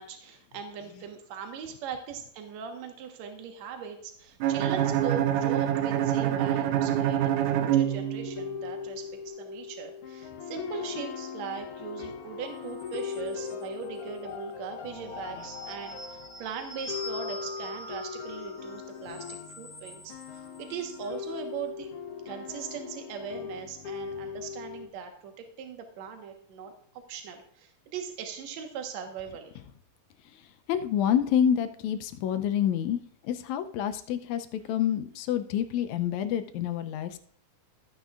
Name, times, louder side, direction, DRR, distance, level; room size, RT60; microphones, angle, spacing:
voice 1, 0.0-21.9 22.3-26.7 27.1-29.5, right 7 dB, 65° right, 4 dB, 2.3 m, -40 dB
Bowed string instrument, 4.4-8.5, right 11 dB, 90° right, 2.2 m, -26 dB
sound 1, 6.8-24.9, left 6 dB, 60° left, 1.5 m, -40 dB
sound 2, 12.4-13.9 14.8-21.4, left 1 dB, 45° left, 0.9 m, -45 dB
voice 2, 30.7-37.2, left 9 dB, 75° left, 9 dB, 1.8 m, -28 dB
14.0 x 9.1 x 2.4 m, 0.66 s
omnidirectional pair, 3.6 m